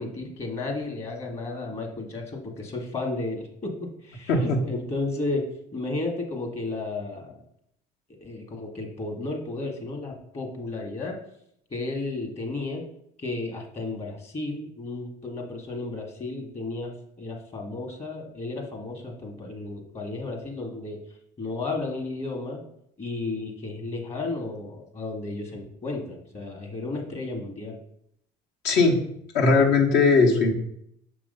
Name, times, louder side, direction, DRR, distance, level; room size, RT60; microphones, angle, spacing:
voice 1, 0.0-5.4 5.7-7.4 8.2-11.2 11.7-12.8 13.2-21.0 21.4-22.6 23.0-27.8, left 2 dB, 40° left, 2 dB, 1.3 m, -33 dB
voice 2, 4.3-4.6 28.6-29.0 29.3-30.5, left 4 dB, 80° left, 0 dB, 1.3 m, -19 dB
5.8 x 3.1 x 5.3 m, 0.73 s
supercardioid pair, 100°, 17 cm